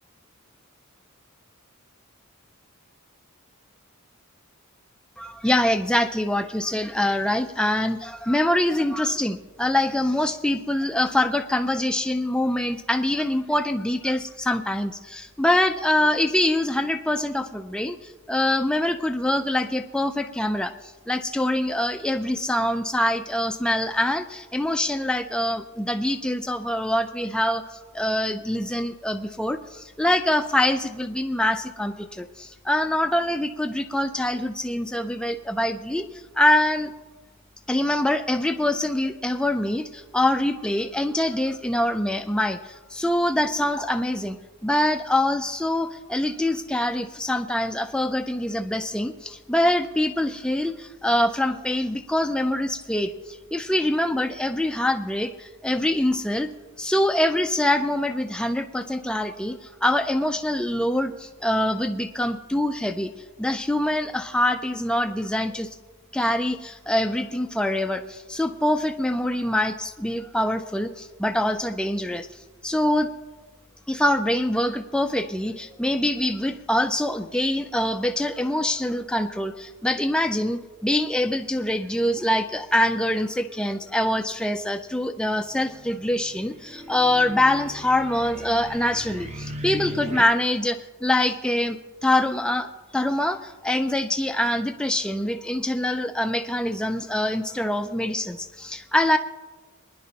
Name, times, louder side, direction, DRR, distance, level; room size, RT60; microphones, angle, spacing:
voice 1, 5.2-20.7 21.1-36.1 36.4-36.9 37.7-44.4 44.6-56.5 56.8-63.1 63.4-65.7 66.1-72.3 72.6-73.1 73.9-92.7 92.9-99.2, left 1 dB, 5° left, 6 dB, 0.4 m, -24 dB
sound 1, 85.3-90.2, equal, 30° right, 0.8 m, -38 dB
23.5 x 10.0 x 2.9 m, 1.3 s
head